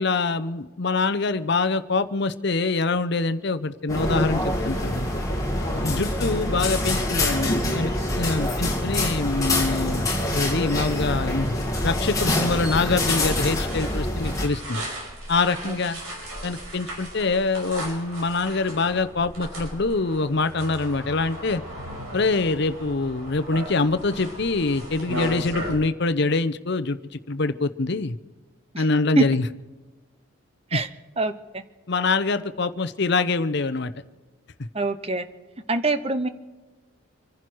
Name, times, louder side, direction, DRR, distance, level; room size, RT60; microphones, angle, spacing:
voice 1, 0.0-5.1 5.8-11.6 11.8-14.8 15.3-16.0 16.4-21.6 22.1-28.2 28.8-29.5 30.7-30.8 31.9-33.9, left 3 dB, 55° left, 10 dB, 0.7 m, -25 dB
sound 1, 3.9-14.5, left 1 dB, 15° left, 2.5 m, -25 dB
sound 2, 11.3-25.7, equal, 80° right, 5.6 m, -37 dB
voice 2, 34.7-35.2 35.7-36.3, right 3 dB, 30° right, 11 dB, 0.8 m, -24 dB
26.0 x 11.0 x 4.6 m, 1.3 s
head